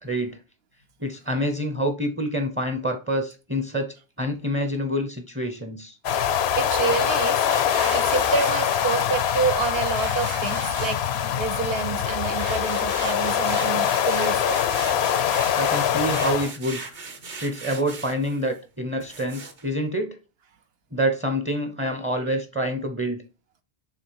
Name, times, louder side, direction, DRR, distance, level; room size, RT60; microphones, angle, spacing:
voice 1, 0.0-0.4 1.0-6.0 15.6-16.9 17.4-20.2 20.9-23.2, equal, 15° right, 0.6 m, -27 dB
sound 1, 6.0-16.5, left 9 dB, 80° left, 0.8 m, -23 dB
voice 2, 6.6-7.5 7.9-11.0 11.4-14.6, right 5 dB, 70° right, 1.1 m, -28 dB
sound 2, 7.5-11.3 11.8-18.6 19.0-19.6, right 4 dB, 50° right, 1.0 m, -39 dB
7.0 x 3.1 x 4.6 m
omnidirectional pair, 1.1 m